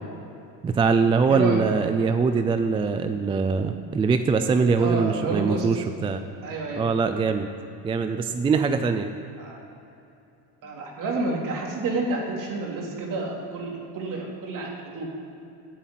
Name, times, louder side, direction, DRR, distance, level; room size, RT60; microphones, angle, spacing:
voice 1, 0.6-6.2 6.8-7.5 7.8-9.1, right 5 dB, 15° right, 8 dB, 0.3 m, -22 dB
voice 2, 1.3-1.6 4.8-5.7 6.4-6.8 9.4-9.6 10.6-15.1, right 3 dB, 50° right, -1 dB, 3.3 m, -29 dB
11.5 x 10.0 x 9.1 m, 2.8 s
cardioid pair, 150°, 42 cm